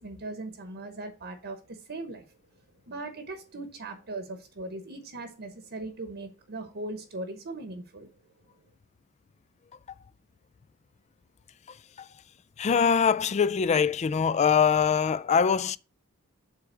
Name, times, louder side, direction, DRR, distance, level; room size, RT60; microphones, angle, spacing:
voice 1, 0.0-2.2 2.9-8.1, right 2 dB, 50° right, 1.0 m, -39 dB
voice 2, 11.7-12.1 12.6-15.8, left 6 dB, 30° left, 0.3 m, -23 dB
7.7 x 3.6 x 6.2 m
head